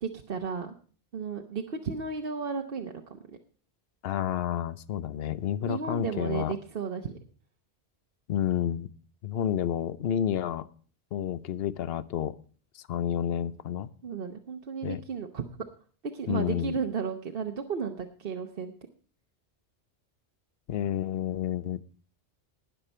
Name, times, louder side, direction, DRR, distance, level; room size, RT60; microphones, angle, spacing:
voice 1, 0.0-0.7 1.1-3.2 5.7-7.2 14.0-15.4 16.1-18.7, right 5 dB, 60° right, 4 dB, 1.1 m, -34 dB
voice 2, 4.0-6.6 8.3-8.9 9.2-10.7 11.1-12.3 12.7-13.9 14.8-15.0 16.3-16.8 20.7-21.8, left 10 dB, 70° left, 16 dB, 0.9 m, -30 dB
19.0 x 6.7 x 4.3 m, 0.42 s
omnidirectional pair, 1.1 m